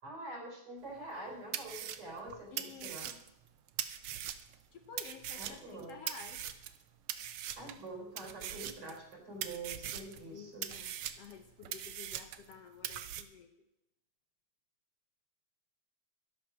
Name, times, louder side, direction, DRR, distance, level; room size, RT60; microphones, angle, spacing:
voice 1, 0.0-3.1 5.3-6.0 7.6-10.8, right 2 dB, 45° right, 0 dB, 5.3 m, -46 dB
sound 1, 1.0-1.1 1.5-4.6 5.0-6.8 7.1-7.8 8.2-9.1 9.4-10.2 10.6-12.5 12.8-13.2, right 10 dB, 70° right, 1.2 m, -41 dB
voice 2, 2.5-3.2 4.7-6.5 10.2-13.5, left 6 dB, 65° left, 6 dB, 1.9 m, -52 dB
12.0 x 12.0 x 6.2 m, 0.83 s
omnidirectional pair, 3.4 m